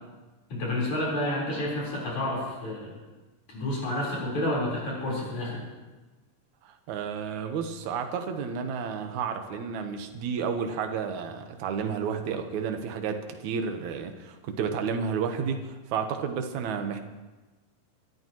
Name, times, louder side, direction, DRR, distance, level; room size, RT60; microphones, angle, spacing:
voice 1, 0.5-2.9 3.5-5.6, left 1 dB, 60° left, -5 dB, 5.6 m, -30 dB
voice 2, 6.6-17.0, right 6 dB, 65° right, 6 dB, 2.3 m, -31 dB
27.0 x 13.5 x 3.1 m, 1.2 s
omnidirectional pair, 3.9 m